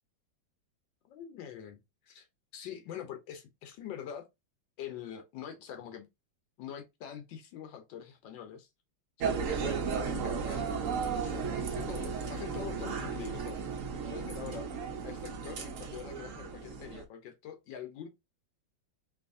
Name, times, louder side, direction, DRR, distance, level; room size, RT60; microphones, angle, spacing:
voice 1, 1.1-1.8 2.1-2.3 2.5-4.2 4.8-6.1 6.6-8.7 9.2-10.6 11.2-13.6 14.0-14.7 15.0-18.1, left 9 dB, 80° left, 1.4 m, -44 dB
sound 1, 9.2-17.0, right 6 dB, 60° right, 0.8 m, -35 dB
4.7 x 2.6 x 2.6 m
omnidirectional pair, 2.0 m